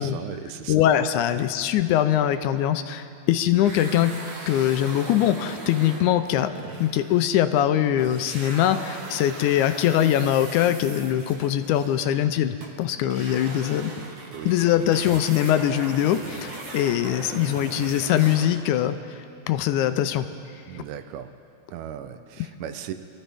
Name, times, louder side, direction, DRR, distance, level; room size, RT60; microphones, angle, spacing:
voice 1, 0.0-1.0 14.3-14.5 14.8-14.9 20.7-21.3 21.7-22.9, right 9 dB, 80° right, 9 dB, 2.1 m, -37 dB
voice 2, 0.7-4.2 4.5-6.5 6.8-13.9 14.5-19.2 19.5-20.3 20.7-20.8, left 11 dB, 85° left, 10 dB, 2.0 m, -22 dB
sound 1, 3.6-7.7 8.0-18.8, right 3 dB, 50° right, 1.8 m, -39 dB
25.5 x 13.0 x 3.5 m, 2.6 s
omnidirectional pair, 3.5 m